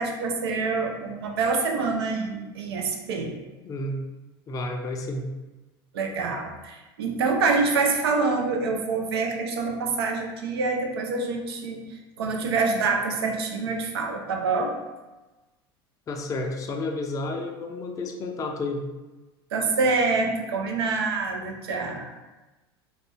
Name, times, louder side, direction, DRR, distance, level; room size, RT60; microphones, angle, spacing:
voice 1, 0.0-3.3 5.9-14.8 19.5-22.1, right 4 dB, 80° right, 2 dB, 0.5 m, -26 dB
voice 2, 3.6-4.0 4.5-5.3 16.1-18.8, left 2 dB, 25° left, 2 dB, 0.4 m, -31 dB
2.4 x 2.1 x 3.4 m, 1.1 s
hypercardioid pair, 85°, 13 cm